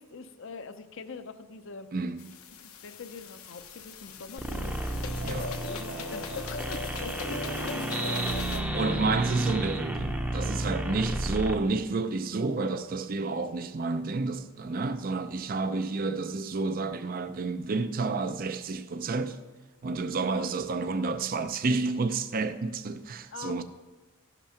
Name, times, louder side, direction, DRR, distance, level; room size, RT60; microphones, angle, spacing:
voice 1, 0.0-1.9 2.6-9.0 10.8-11.2 15.5-15.8 20.2-20.5 23.3-23.6, left 4 dB, 60° left, 0.6 m, -44 dB
voice 2, 1.9-2.4 5.2-5.5 8.7-19.4 19.8-23.6, right 3 dB, 40° right, 0.5 m, -30 dB
sound 1, 2.2-8.6, left 4 dB, 90° left, 1.0 m, -39 dB
sound 2, 4.4-11.6, right 1 dB, 5° right, 0.7 m, -32 dB
15.5 x 5.9 x 5.8 m
head